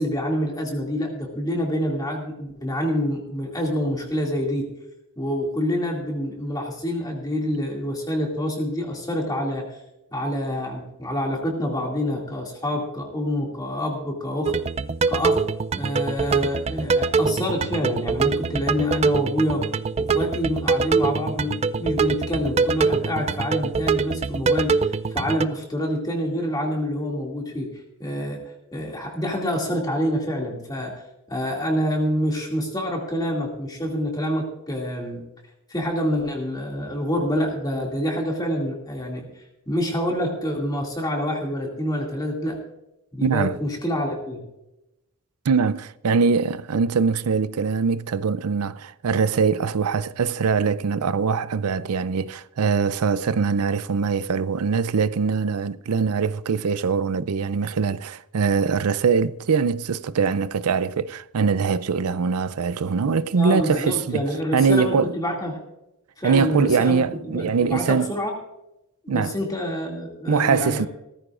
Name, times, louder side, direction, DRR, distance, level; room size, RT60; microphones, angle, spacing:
voice 1, 0.0-4.7 5.2-9.7 10.1-14.5 15.1-15.4 15.8-19.6 20.0-27.7 28.0-28.4 28.7-30.9 31.3-35.2 35.7-39.2 39.7-42.6 43.1-44.4 63.4-65.6 66.2-68.3 69.0-70.9, equal, 15° left, 2.4 m, -27 dB
sound 1, 14.5-25.5, right 4 dB, 30° right, 0.3 m, -24 dB
voice 2, 43.2-43.6 45.5-64.2 64.5-65.2 66.2-68.1 69.1-69.3 70.3-70.9, right 5 dB, 85° right, 0.5 m, -22 dB
17.5 x 14.5 x 2.5 m
head